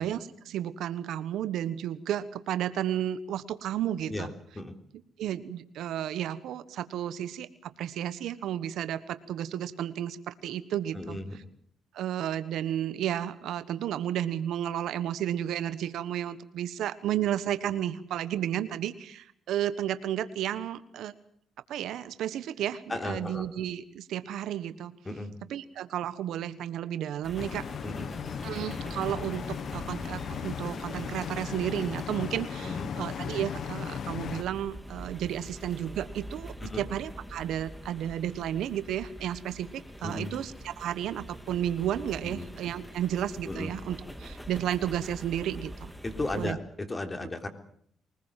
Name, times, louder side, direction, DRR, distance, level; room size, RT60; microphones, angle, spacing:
voice 1, 0.0-4.3 5.2-11.2 11.9-21.1 21.7-24.9 25.5-27.7 28.4-45.9 46.4-46.6, right 11 dB, 80° right, 13 dB, 1.4 m, -32 dB
voice 2, 10.9-11.4 22.9-23.5 25.1-25.3 27.8-28.1 32.6-32.9 36.7-36.8 40.0-40.3 42.2-42.5 43.5-43.7 46.0-47.5, left 2 dB, 20° left, 6 dB, 3.6 m, -35 dB
sound 1, 27.2-46.5, equal, 5° left, 2.6 m, -44 dB
sound 2, 27.4-34.4, left 8 dB, 60° left, 1.1 m, -37 dB
23.0 x 20.0 x 7.6 m, 0.65 s
cardioid pair, 90°, 0 cm